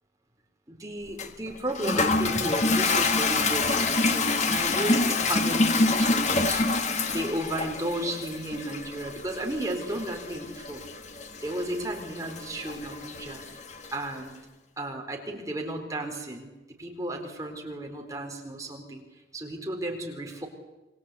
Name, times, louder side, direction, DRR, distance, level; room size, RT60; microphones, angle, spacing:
voice 1, 0.7-6.6 7.1-10.8 11.4-13.4 13.9-14.4 14.8-16.5 16.8-19.0 19.3-20.5, right 1 dB, 20° right, 2 dB, 4.1 m, -34 dB
Toilet flush, 1.2-14.0, left 3 dB, 40° left, 1.8 m, -27 dB
27.0 x 23.5 x 8.4 m, 1.1 s
head